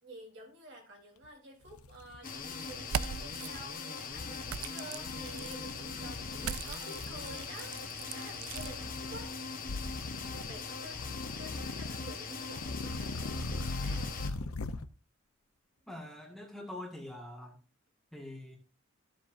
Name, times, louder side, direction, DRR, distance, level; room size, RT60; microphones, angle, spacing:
voice 1, 0.0-9.3 9.8-10.1 10.5-11.0 11.4-14.2, right 1 dB, 55° right, 0 dB, 3.6 m, -50 dB
sound 1, 1.2-1.3 1.7-2.8 3.2-3.6 4.1-4.7 5.0-6.6 6.9-7.4 8.5-9.3 9.6-10.6 10.9-12.1 12.5-14.9, left 2 dB, 85° left, 0.7 m, -40 dB
sound 2, 2.2-14.3, left 4 dB, 40° left, 1.3 m, -41 dB
sound 3, 2.8-3.5 4.5-5.6 6.4-8.7, right 8 dB, 80° right, 0.4 m, -39 dB
voice 2, 15.9-17.6 18.1-18.6, left 1 dB, ahead, -2 dB, 1.7 m, -44 dB
14.0 x 7.6 x 2.6 m, 0.35 s
head